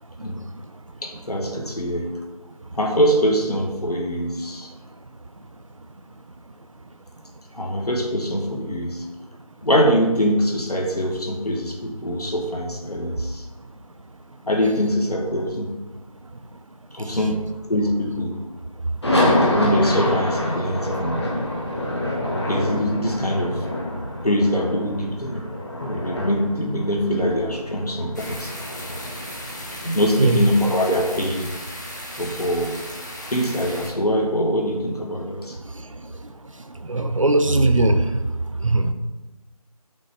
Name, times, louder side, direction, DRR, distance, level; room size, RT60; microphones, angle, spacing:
voice 1, 1.0-2.1 2.8-4.7 7.5-9.0 9.6-13.4 14.5-15.7 16.9-18.4 19.5-21.2 22.5-23.6 24.2-25.5 25.8-28.5 29.7-31.5 32.2-32.7 33.3-35.6, equal, 85° left, 1 dB, 1.4 m, -23 dB
sound 1, 19.0-31.2, left 1 dB, 45° left, 1.3 m, -26 dB
sound 2, 28.1-33.9, left 1 dB, 30° left, 0.8 m, -36 dB
voice 2, 36.8-38.3 38.6-38.9, right 2 dB, 60° right, 8 dB, 0.5 m, -19 dB
5.9 x 3.4 x 5.1 m, 1.1 s
figure-of-eight pair, 170°, 19 cm